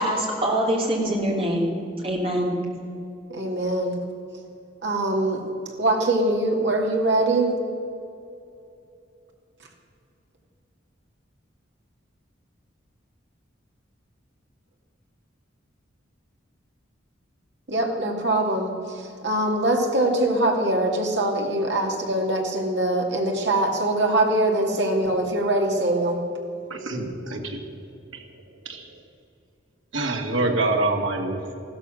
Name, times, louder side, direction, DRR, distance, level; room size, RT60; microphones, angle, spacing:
voice 1, 0.0-1.7 2.0-2.6, equal, 30° right, -1 dB, 3.0 m, -24 dB
voice 2, 3.3-4.0 4.8-5.4 5.8-7.5 17.7-26.2, right 1 dB, 60° right, 1 dB, 2.4 m, -23 dB
voice 3, 26.7-27.6 28.7-28.9 29.9-31.5, right 2 dB, 85° right, 2 dB, 2.1 m, -25 dB
15.0 x 13.0 x 6.4 m, 2.6 s
head